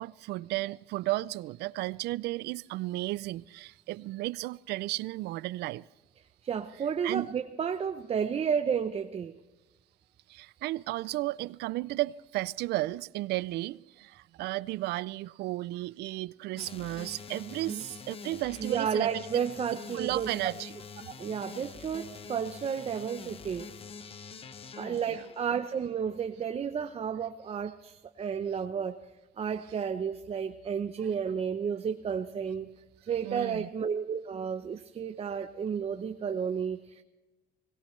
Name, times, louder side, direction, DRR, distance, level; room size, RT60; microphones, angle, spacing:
voice 1, 0.0-5.9 7.0-7.3 10.3-19.3 19.7-20.7 24.9-25.3 33.2-33.7, right 18 dB, 80° right, 0.4 m, -34 dB
voice 2, 6.4-9.4 17.7-17.8 18.6-20.5 21.1-23.7 24.7-29.0 29.4-32.7 33.1-37.0, right 7 dB, 35° right, 0.7 m, -32 dB
sound 1, 16.6-26.2, left 5 dB, 35° left, 0.8 m, -46 dB
21.5 x 18.0 x 3.2 m
cardioid pair, 110°, 17 cm